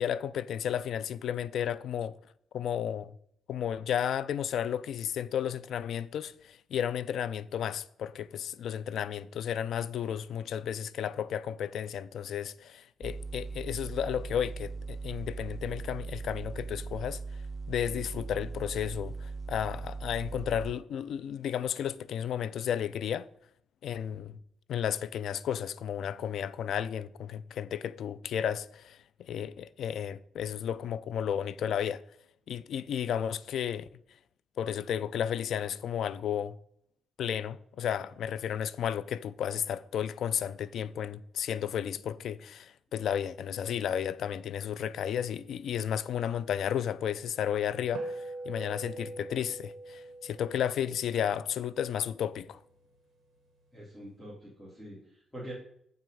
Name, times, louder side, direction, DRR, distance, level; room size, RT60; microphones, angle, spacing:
voice 1, 0.0-2.2 2.5-3.1 3.5-17.2 17.7-23.3 23.8-24.4 24.7-32.0 32.5-33.9 34.6-36.6 37.2-52.6, left 9 dB, 75° left, 0.4 m, -33 dB
sound 1, 13.0-20.7, right 4 dB, 20° right, 0.3 m, -39 dB
sound 2, 47.9-52.6, right 2 dB, 55° right, 1.3 m, -43 dB
voice 2, 53.7-55.5, right 1 dB, 10° left, 3.1 m, -45 dB
7.7 x 5.9 x 5.4 m
cardioid pair, 125°, 0 cm